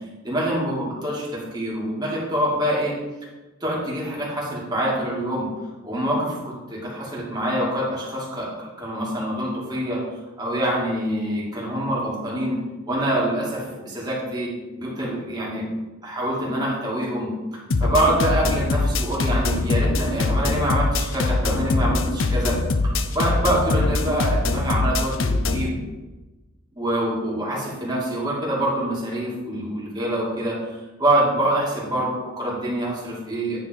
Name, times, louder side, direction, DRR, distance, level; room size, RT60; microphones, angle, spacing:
voice 1, 0.2-2.9 3.6-5.5 5.8-10.0 10.4-12.6 12.9-14.5 14.8-15.7 16.0-17.3 17.8-22.6 23.1-25.7 26.7-30.5 31.0-33.6, right 1 dB, 20° right, -5 dB, 2.4 m, -25 dB
sound 1, 17.7-25.7, left 3 dB, 65° left, 0.6 m, -23 dB
9.6 x 4.2 x 5.3 m, 1.2 s
head